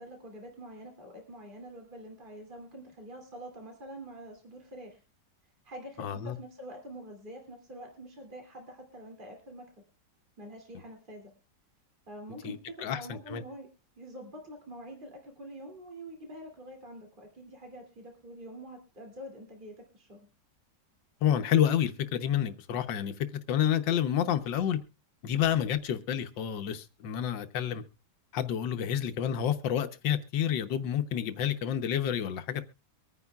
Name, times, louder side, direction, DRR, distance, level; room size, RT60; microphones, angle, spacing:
voice 1, 0.0-5.0 5.6-9.7 10.4-11.3 12.1-13.7 14.0-20.3, right 1 dB, 25° right, 2.9 m, -46 dB
voice 2, 6.0-6.4 12.4-13.4 21.2-24.8 25.2-27.8 28.3-32.6, left 9 dB, 90° left, 1.6 m, -29 dB
24.0 x 9.7 x 2.4 m
omnidirectional pair, 1.9 m